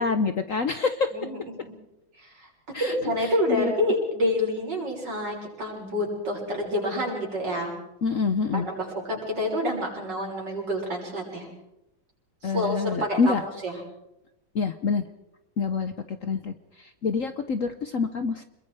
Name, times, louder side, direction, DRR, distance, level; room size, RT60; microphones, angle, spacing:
voice 1, 0.0-1.1 2.7-3.7 8.0-8.7 12.4-13.4 14.5-15.0 15.6-18.4, left 4 dB, 50° left, 9 dB, 1.1 m, -27 dB
voice 2, 1.1-1.7 2.2-2.5 2.8-7.7 8.5-11.5 12.4-13.8, left 1 dB, 60° right, -1 dB, 6.9 m, -28 dB
27.0 x 22.0 x 4.9 m, 0.91 s
omnidirectional pair, 2.1 m